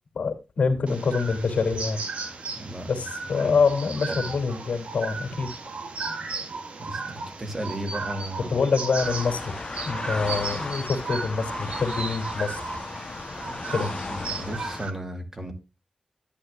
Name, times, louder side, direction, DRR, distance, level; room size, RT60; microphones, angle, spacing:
voice 1, 0.1-2.0 2.9-5.5 8.5-9.5 9.8-12.7 13.7-13.9, left 5 dB, 90° left, 2.6 m, -25 dB
sound 1, 0.9-14.9, right 4 dB, 65° right, 1.8 m, -35 dB
voice 2, 2.6-3.0 3.4-3.5 3.8-4.4 6.8-7.0 7.4-8.6 13.7-15.5, right 1 dB, 25° right, 2.5 m, -35 dB
sound 2, 9.0-14.9, left 3 dB, 35° left, 0.9 m, -35 dB
12.0 x 10.5 x 2.3 m
wide cardioid pair, 175°, 2 cm